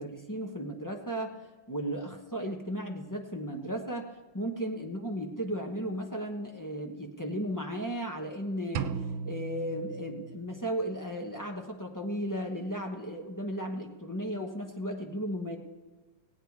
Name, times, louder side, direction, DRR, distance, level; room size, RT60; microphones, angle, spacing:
voice 1, 0.0-1.4 1.7-15.6, equal, 15° left, 2 dB, 0.6 m, -35 dB
sound 1, 8.8-10.7, right 6 dB, 90° right, 1.4 m, -36 dB
17.5 x 8.9 x 4.7 m, 1.3 s
omnidirectional pair, 2.1 m